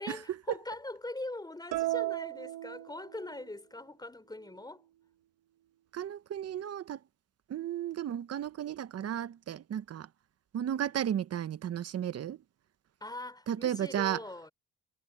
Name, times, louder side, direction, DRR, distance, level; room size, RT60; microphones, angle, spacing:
voice 1, 0.0-4.8 13.0-14.5, left 2 dB, 15° left, 4.9 m, -42 dB
sound 1, 1.7-3.5, right 17 dB, 85° right, 1.4 m, -35 dB
voice 2, 5.9-7.0 7.5-10.1 10.5-12.4 13.5-14.2, right 10 dB, 55° right, 1.0 m, -34 dB
cardioid pair, 90°, 30 cm